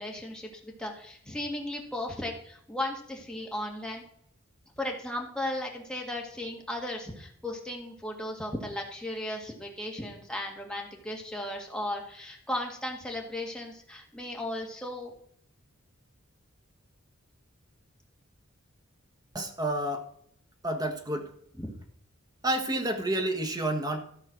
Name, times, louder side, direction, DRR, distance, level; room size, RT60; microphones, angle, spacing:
voice 1, 0.0-4.0 4.8-15.1 21.6-21.7, left 1 dB, 5° left, 0 dB, 1.9 m, -36 dB
voice 2, 19.3-20.1 20.6-21.3 22.4-24.0, right 1 dB, 20° right, 5 dB, 1.3 m, -29 dB
13.5 x 5.6 x 6.2 m, 0.68 s
head